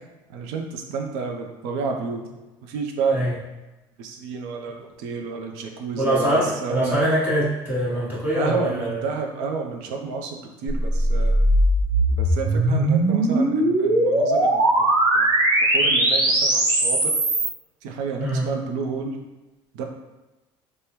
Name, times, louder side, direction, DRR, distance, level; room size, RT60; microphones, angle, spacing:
voice 1, 0.3-2.3 2.7-3.3 4.0-7.0 8.3-11.3 12.2-14.6 15.1-15.5 15.7-17.1 17.8-19.2 19.7-19.8, right 5 dB, 85° right, 2 dB, 0.5 m, -30 dB
voice 2, 5.9-9.0 18.2-18.4, equal, 15° right, -8 dB, 1.0 m, -23 dB
sound 1, 10.7-17.5, right 1 dB, 40° right, 0.7 m, -19 dB
3.5 x 2.1 x 2.9 m, 1.1 s
cardioid pair, 135°, 11 cm